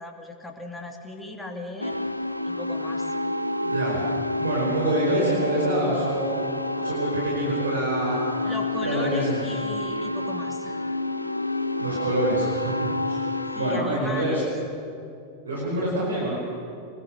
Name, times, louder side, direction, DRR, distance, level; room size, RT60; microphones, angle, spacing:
voice 1, 0.0-2.0 2.4-3.1 8.4-11.0 13.5-14.6, left 2 dB, 10° left, 2 dB, 2.6 m, -37 dB
sound 1, 1.8-13.8, left 2 dB, 90° left, 0.6 m, -29 dB
voice 2, 3.6-4.0 4.4-8.5 8.8-9.4 11.8-13.2 13.6-14.5 15.5-16.4, right 1 dB, 70° right, -3 dB, 5.1 m, -26 dB
24.0 x 20.0 x 6.5 m, 2.5 s
figure-of-eight pair, 90°, 0 cm